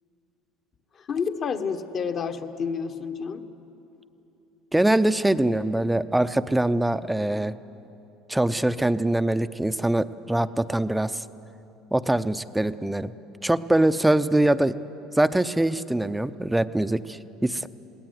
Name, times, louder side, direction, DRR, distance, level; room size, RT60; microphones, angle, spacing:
voice 1, 1.1-3.4, left 6 dB, 45° left, 7 dB, 1.3 m, -29 dB
voice 2, 4.7-7.5 8.3-11.2 11.9-13.1 13.4-14.8 15.2-17.7, right 1 dB, 5° right, 12 dB, 0.6 m, -23 dB
21.5 x 17.0 x 9.6 m, 2.9 s
supercardioid pair, 100°, 0 cm